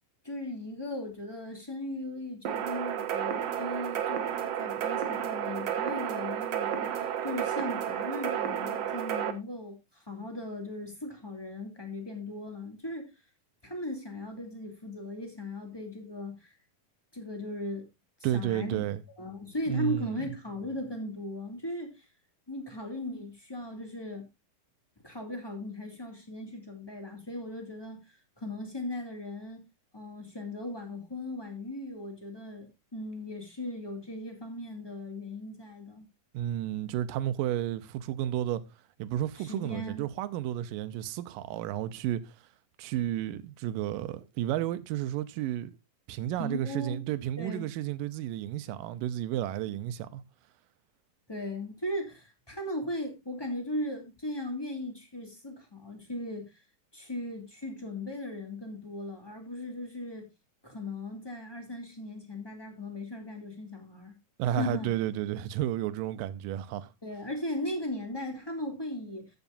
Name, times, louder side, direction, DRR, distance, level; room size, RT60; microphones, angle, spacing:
voice 1, 0.2-4.3 4.6-13.1 13.6-16.5 17.1-17.9 18.3-18.8 19.2-22.0 22.5-24.3 25.0-29.6 29.9-36.1 39.4-40.1 46.4-47.0 47.4-47.7 51.3-56.5 56.9-60.3 60.6-64.2 64.5-64.9 67.0-69.3, left 1 dB, 10° left, 2.0 m, -38 dB
sound 1, 2.5-9.3, right 9 dB, 60° right, 1.9 m, -32 dB
voice 2, 18.2-19.0 19.7-20.3 36.3-38.6 39.0-42.3 42.8-45.8 46.1-50.2 64.4-66.9, right 12 dB, 80° right, 2.4 m, -32 dB
14.0 x 8.1 x 2.6 m
omnidirectional pair, 4.0 m